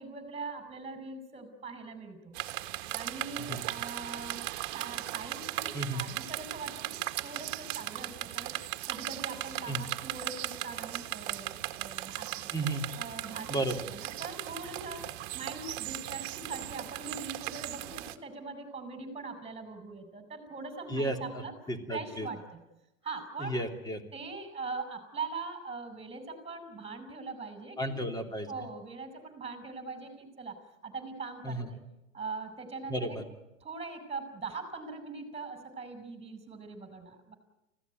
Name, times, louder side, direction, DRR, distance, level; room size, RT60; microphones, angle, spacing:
voice 1, 0.0-2.3 2.9-8.5 8.9-12.5 12.9-15.1 15.3-21.5 21.9-22.6 23.0-23.6 24.1-28.1 28.5-31.8 32.1-33.2 33.6-37.4, right 4 dB, 15° right, 10 dB, 5.4 m, -42 dB
sound 1, 2.3-18.2, right 16 dB, 50° right, 1.7 m, -38 dB
voice 2, 12.5-12.9 13.5-13.8 20.9-21.4 21.7-22.3 23.4-24.0 27.8-28.5 31.4-31.7 32.9-33.2, right 1 dB, 10° left, 7 dB, 3.0 m, -33 dB
25.5 x 17.0 x 9.3 m, 0.96 s
hypercardioid pair, 110°, 40 cm